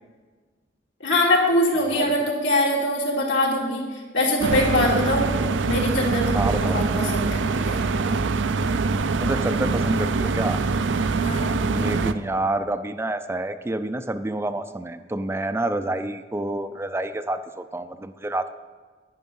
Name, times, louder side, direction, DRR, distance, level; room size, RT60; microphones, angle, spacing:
voice 1, 1.0-5.3 5.7-7.8 11.2-11.7, left 1 dB, 75° left, -3 dB, 3.2 m, -23 dB
sound 1, 4.4-12.1, right 4 dB, 75° right, 0.5 m, -24 dB
voice 2, 6.3-6.9 9.2-10.6 11.7-18.5, right 1 dB, 15° right, 10 dB, 0.4 m, -28 dB
11.0 x 9.8 x 5.5 m, 1.4 s
head